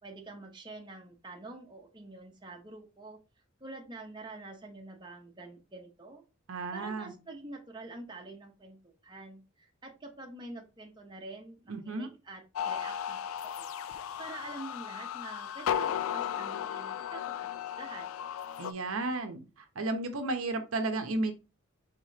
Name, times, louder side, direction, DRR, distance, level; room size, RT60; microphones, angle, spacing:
voice 1, 0.0-3.2 3.6-6.2 6.7-13.2 13.4-18.2, right 2 dB, 20° right, 1 dB, 0.9 m, -47 dB
voice 2, 6.5-7.1 11.7-12.1 18.6-19.4 19.7-21.3, right 2 dB, 85° right, 6 dB, 0.8 m, -33 dB
sound 1, 12.6-18.7, left 9 dB, 80° left, 0.3 m, -35 dB
5.0 x 3.6 x 2.8 m, 0.29 s
head